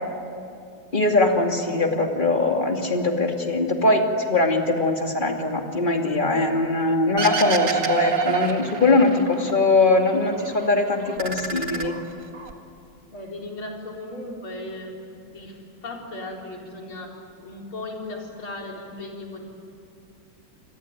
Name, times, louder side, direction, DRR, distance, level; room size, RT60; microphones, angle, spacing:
voice 1, 0.9-11.9, left 2 dB, 25° left, 3 dB, 2.5 m, -21 dB
sound 1, 7.2-9.5 9.9-10.7 11.0-12.5, right 5 dB, 40° right, 2.0 m, -27 dB
voice 2, 13.1-15.0 15.3-19.4, left 2 dB, 75° left, 0 dB, 4.8 m, -36 dB
28.0 x 22.0 x 9.5 m, 2.5 s
omnidirectional pair, 2.3 m